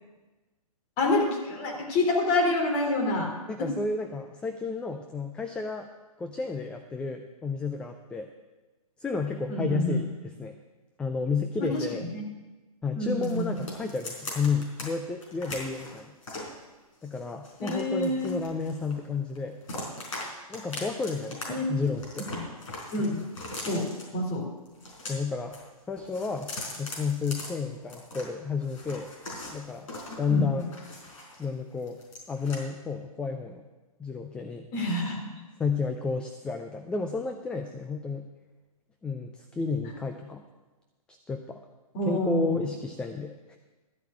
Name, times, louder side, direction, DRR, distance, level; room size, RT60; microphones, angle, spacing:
voice 1, 1.0-3.3 3.6-3.7 9.5-10.0 11.6-11.9 12.1-12.2 12.9-13.5 17.6-18.3 21.5-21.7 22.3-22.4 22.9-23.2 23.6-24.5 30.3-30.6 34.7-35.4 41.9-42.6, left 1 dB, 30° left, 2 dB, 3.1 m, -27 dB
voice 2, 3.5-5.9 6.2-8.3 9.0-10.6 11.0-12.1 12.8-16.1 17.0-19.6 20.5-22.3 25.1-25.6 25.9-26.5 26.8-29.1 29.5-29.9 30.2-30.7 31.4-32.0 32.3-33.6 34.0-34.7 35.6-38.3 39.0-40.4 41.3-41.6 42.1-43.6, left 4 dB, 5° left, 6 dB, 0.4 m, -31 dB
sound 1, 13.2-14.9 15.2-16.5 17.0-19.1 19.3-20.2 20.5-21.4 21.7-24.0 24.7-25.6 25.9-28.2 28.6-31.5 31.8-32.6, left 2 dB, 60° left, 4.6 m, -40 dB
12.5 x 5.7 x 8.4 m, 1.2 s
hypercardioid pair, 135°, 19 cm